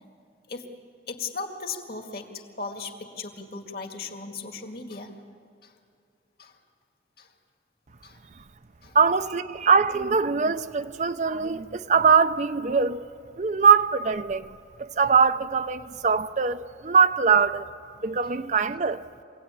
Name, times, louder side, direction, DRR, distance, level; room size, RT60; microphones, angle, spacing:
voice 1, 1.1-5.2 5.6-5.7 6.4-6.6 7.2-7.3 8.0-8.2 8.8-9.0, left 4 dB, 55° left, 2.1 m, -37 dB
voice 2, 8.9-13.0 13.4-14.5 14.8-17.6 18.0-19.0, right 5 dB, 40° right, 0.5 m, -22 dB
24.0 x 17.5 x 9.2 m
head